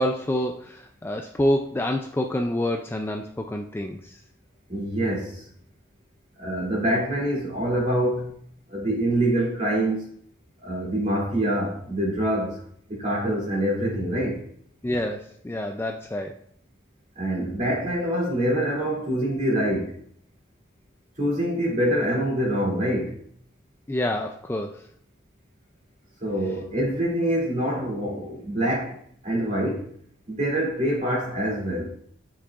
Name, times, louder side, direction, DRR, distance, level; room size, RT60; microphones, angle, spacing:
voice 1, 0.0-4.2 14.8-16.4 23.9-24.8, left 1 dB, 10° left, 3 dB, 0.3 m, -27 dB
voice 2, 4.7-5.5 6.4-8.3 8.7-10.0 10.6-12.6 12.9-14.4 17.2-20.0 21.2-23.2 26.2-29.9 30.3-31.9, right 1 dB, 35° right, -4 dB, 2.7 m, -25 dB
8.6 x 5.9 x 2.4 m, 0.63 s
head